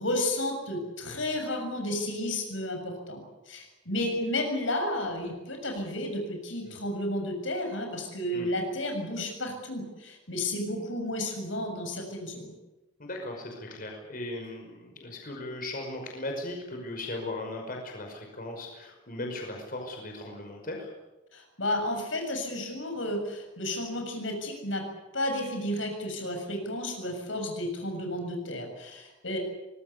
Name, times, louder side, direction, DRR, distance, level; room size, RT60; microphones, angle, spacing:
voice 1, 0.0-12.5 21.3-24.9 25.1-29.4, left 1 dB, 80° left, 4 dB, 7.0 m, -32 dB
voice 2, 13.0-20.9, left 2 dB, 50° left, 2 dB, 5.6 m, -37 dB
24.5 x 20.5 x 8.4 m, 1.1 s
head